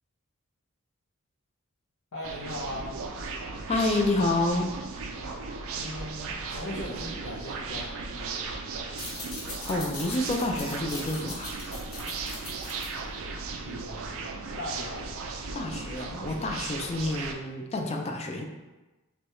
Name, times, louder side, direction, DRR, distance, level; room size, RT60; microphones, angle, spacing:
voice 1, 2.1-2.9 5.7-8.6 13.6-15.1, left 1 dB, 85° left, -7 dB, 0.9 m, -39 dB
sound 1, 2.2-17.3, right 4 dB, 65° right, 0.4 m, -36 dB
voice 2, 3.7-4.7 9.7-11.5 15.5-18.4, left 2 dB, 30° left, 2 dB, 0.4 m, -28 dB
sound 2, 8.8-14.0, left 2 dB, 70° left, 1.3 m, -41 dB
5.9 x 2.3 x 3.0 m, 1.1 s
head